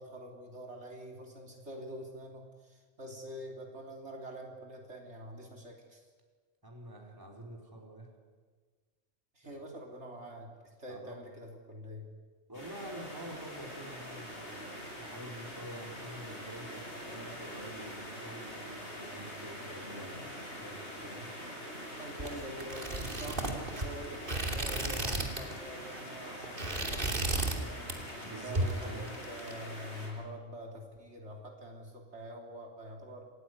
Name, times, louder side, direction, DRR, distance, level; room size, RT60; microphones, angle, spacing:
voice 1, 0.0-6.0 9.3-10.5 10.8-12.1 15.5-15.6 19.9-20.2 22.0-27.9 28.4-33.2, equal, 75° right, 0 dB, 3.8 m, -46 dB
voice 2, 6.6-8.1 9.4-9.6 10.9-11.3 12.5-21.3 28.2-29.1, right 1 dB, 20° right, 0 dB, 4.8 m, -47 dB
sound 1, 12.5-30.1, equal, 75° left, 8.2 m, -44 dB
sound 2, 22.2-25.6 25.9-26.1 26.4-27.6 27.9-28.2 28.6-29.5, right 2 dB, 50° right, 3.0 m, -34 dB
27.0 x 19.0 x 9.7 m, 1.5 s
omnidirectional pair, 1.2 m